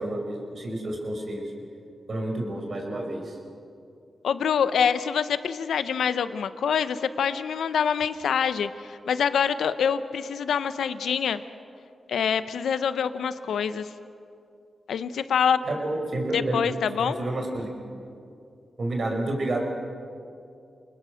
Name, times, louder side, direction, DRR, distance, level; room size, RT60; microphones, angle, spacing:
voice 1, 0.0-1.4 2.1-3.4 15.7-16.7 17.0-18.0 18.8-19.6, right 1 dB, 60° right, 1 dB, 5.1 m, -30 dB
voice 2, 4.2-11.4 12.1-13.9 14.9-15.6 16.3-17.2, left 7 dB, 85° left, 12 dB, 0.8 m, -25 dB
28.5 x 20.0 x 6.4 m, 2.5 s
cardioid pair, 50°, 0 cm